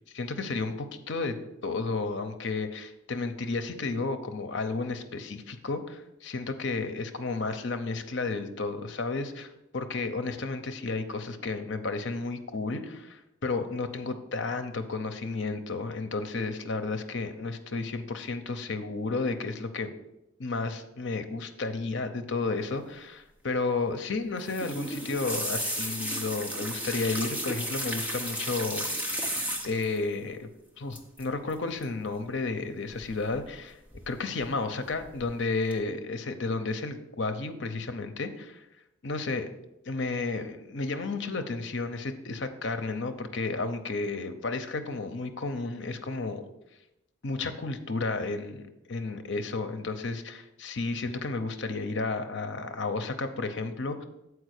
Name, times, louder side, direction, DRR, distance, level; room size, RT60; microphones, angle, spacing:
voice 1, 0.1-1.4 1.6-19.9 20.4-30.5 30.8-33.8 34.1-38.6 39.0-39.5 39.9-46.4 47.2-54.0, left 3 dB, 60° left, 8 dB, 0.7 m, -32 dB
sound 1, 24.4-30.0 30.9-31.2 31.5-31.8 33.0-33.6 33.9-34.5 34.9-35.3 35.7-35.8, equal, 10° right, 0.8 m, -34 dB
7.2 x 4.7 x 6.5 m, 0.89 s
head